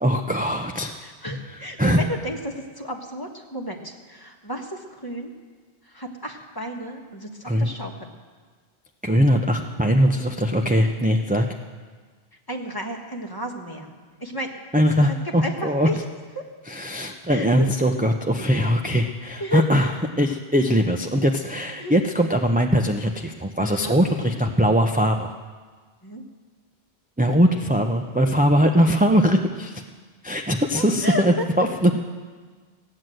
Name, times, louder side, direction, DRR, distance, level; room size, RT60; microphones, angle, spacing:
voice 1, 0.0-0.9 1.8-2.0 7.5-7.7 9.0-11.5 14.7-15.9 16.7-19.9 20.2-25.3 27.2-29.8 30.2-32.0, equal, 10° right, 3 dB, 0.5 m, -21 dB
voice 2, 1.0-5.3 5.8-8.1 12.5-14.5 15.0-15.1 15.4-16.0 16.3-16.4 17.3-17.5 19.4-19.6 21.8-21.9 23.6-24.0 26.0-26.2 28.1-28.2 30.7-31.4, equal, 20° left, 1 dB, 1.5 m, -32 dB
16.5 x 9.5 x 7.7 m, 1.5 s
omnidirectional pair, 1.1 m